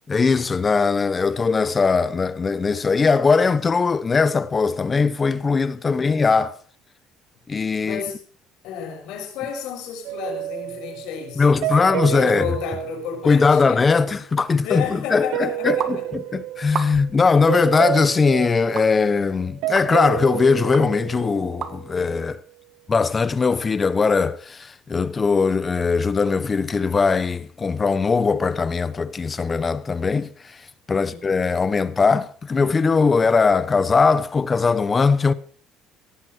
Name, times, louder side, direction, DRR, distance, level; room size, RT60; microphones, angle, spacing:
voice 1, 0.1-6.5 7.5-8.0 11.4-12.5 13.2-22.4 22.9-30.6 30.9-35.3, left 4 dB, 25° left, 1.1 m, -20 dB
voice 2, 5.8-6.2 7.8-8.2 8.6-14.1 14.6-16.1 30.9-31.3, left 7 dB, 80° left, 6.2 m, -32 dB
sound 1, 10.0-13.9 15.3-17.2 17.5-22.0, right 17 dB, 85° right, 0.7 m, -30 dB
sound 2, 15.8-16.0 16.7-17.2 17.7-17.9 18.8-18.9 19.8-19.9 20.7-20.8 21.6-21.7, right 8 dB, 45° right, 1.7 m, -29 dB
17.5 x 14.5 x 4.7 m
cardioid pair, 120°, 0 cm